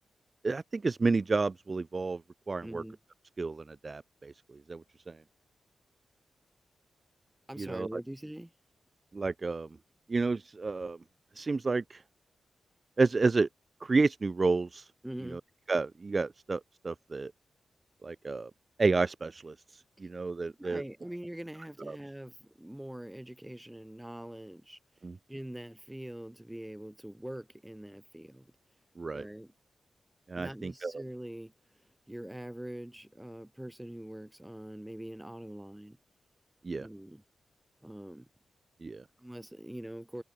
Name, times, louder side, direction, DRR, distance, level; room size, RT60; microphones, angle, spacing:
voice 1, 0.4-2.2 2.5-2.8 3.4-4.3 4.7-4.8 5.1-5.2 7.6-7.9 9.1-9.7 10.1-11.0 11.4-12.0 13.0-13.5 13.8-14.9 15.3-15.4 15.7-17.3 18.0-18.5 18.8-19.5 20.0-20.8 21.9-22.0 25.0-25.2 29.0-29.2 30.3-31.0 36.6-36.9 38.8-39.0, right 3 dB, 40° right, 0.9 m, -30 dB
voice 2, 2.6-3.0 7.5-8.5 15.0-15.4 20.5-24.8 25.3-28.5 29.1-29.5 30.3-31.5 32.1-36.0 36.7-37.2 37.8-38.3 39.2-40.2, right 1 dB, 10° right, 6.0 m, -43 dB
cardioid pair, 70°, 0 cm